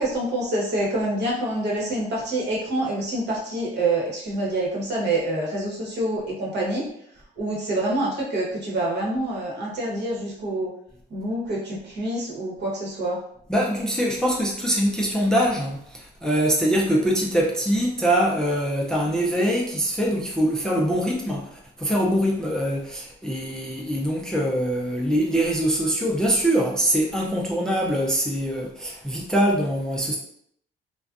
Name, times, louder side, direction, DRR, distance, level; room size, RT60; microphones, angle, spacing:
voice 1, 0.0-6.8 7.4-10.7 11.1-13.2, right 1 dB, 60° right, -3 dB, 1.0 m, -26 dB
voice 2, 13.5-30.2, equal, 5° left, -2 dB, 0.4 m, -23 dB
2.4 x 2.2 x 2.4 m, 0.69 s
cardioid pair, 90°, 20 cm